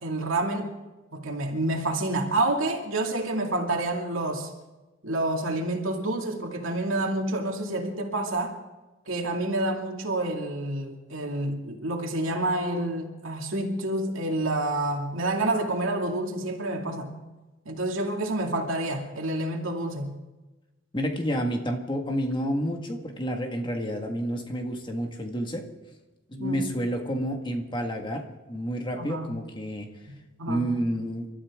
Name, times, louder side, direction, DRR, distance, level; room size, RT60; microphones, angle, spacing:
voice 1, 0.0-0.7 1.1-4.5 5.0-8.6 9.1-17.1 17.7-20.1 26.4-26.7 29.0-29.3 30.1-30.7, right 2 dB, 80° right, 2 dB, 2.4 m, -28 dB
voice 2, 20.9-25.7 26.3-29.9 30.5-31.3, equal, 25° left, 3 dB, 1.8 m, -29 dB
29.0 x 13.0 x 3.7 m, 1.1 s
head